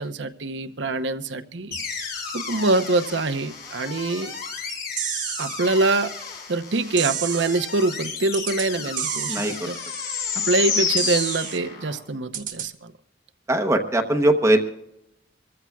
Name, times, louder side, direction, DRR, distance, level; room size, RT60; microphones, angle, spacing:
voice 1, 0.0-4.3 5.4-6.1 6.5-9.8 10.3-12.9, right 3 dB, 70° right, 10 dB, 0.8 m, -25 dB
sound 1, 1.7-12.0, left 5 dB, 55° left, 3.7 m, -31 dB
sound 2, 5.0-5.6 7.0-7.6 8.3-8.7 9.0-9.6 11.0-11.6 12.3-12.7, right 11 dB, 45° right, 1.3 m, -30 dB
voice 2, 13.5-14.6, right 1 dB, 15° right, 3 dB, 0.9 m, -20 dB
25.5 x 14.5 x 2.3 m, 0.84 s
head